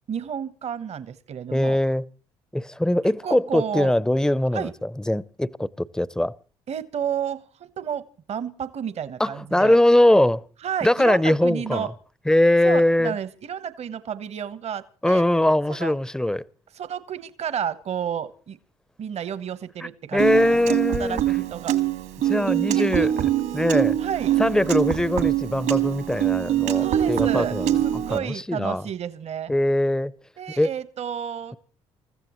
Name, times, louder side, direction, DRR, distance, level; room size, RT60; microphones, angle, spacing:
voice 1, 0.1-1.8 3.2-3.9 4.5-4.7 6.7-8.0 8.3-9.8 10.6-11.9 12.6-15.2 15.8-15.9 16.7-18.6 19.0-21.8 22.7-23.1 24.0-24.3 26.8-27.5 27.8-29.5 30.4-31.6, right 8 dB, 50° right, 1.1 m, -31 dB
voice 2, 1.5-2.1 2.5-6.3 9.2-10.4 10.8-11.9 12.3-13.2 15.0-16.4 20.1-21.2 22.2-23.1 23.5-24.0 24.4-27.8 28.1-28.9 29.5-30.1 30.6-30.7, left 1 dB, 5° left, 0.7 m, -21 dB
Piano, 20.2-28.2, right 12 dB, 70° right, 1.8 m, -24 dB
28.0 x 14.5 x 3.1 m
hypercardioid pair, 50°, 14 cm